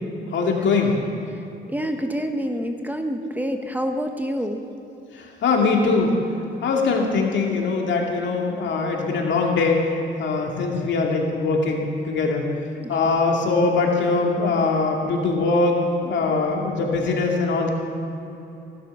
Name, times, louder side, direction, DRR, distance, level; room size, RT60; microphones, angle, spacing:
voice 1, 0.3-1.0 5.1-6.2 6.6-9.9 10.2-12.5 12.9-15.8 16.0-17.7, left 3 dB, 65° left, 0 dB, 2.4 m, -22 dB
voice 2, 1.7-4.6 12.8-12.9, equal, 10° right, 5 dB, 1.1 m, -27 dB
16.5 x 12.0 x 5.4 m, 2.9 s
cardioid pair, 90°, 20 cm